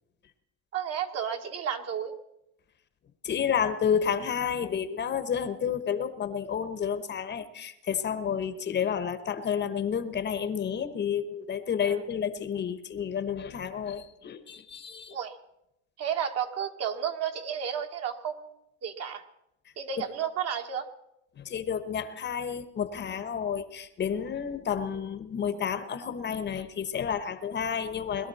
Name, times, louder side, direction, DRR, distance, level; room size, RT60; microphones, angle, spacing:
voice 1, 0.7-2.1 11.8-12.0 15.1-15.4 16.0-18.5 18.8-19.2 19.8-20.9, right 8 dB, 45° right, 5 dB, 1.8 m, -32 dB
voice 2, 3.2-15.2 20.0-20.1 21.4-28.3, left 7 dB, 30° left, 11 dB, 1.1 m, -30 dB
21.5 x 12.5 x 4.2 m, 0.83 s
cardioid pair, 130°, 34 cm